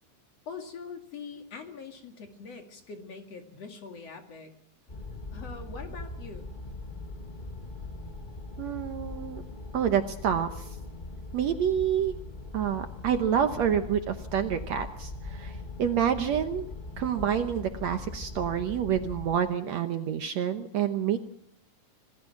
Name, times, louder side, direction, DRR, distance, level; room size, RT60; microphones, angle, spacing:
voice 1, 0.5-4.5 5.3-6.5, left 5 dB, 50° left, 5 dB, 3.0 m, -43 dB
sound 1, 4.9-19.4, left 2 dB, 75° left, 0.4 m, -41 dB
voice 2, 8.6-9.4 9.7-10.8 11.3-12.1 12.5-16.7 17.0-21.2, right 9 dB, 65° right, 7 dB, 1.9 m, -28 dB
27.0 x 18.5 x 6.0 m, 0.73 s
omnidirectional pair, 3.9 m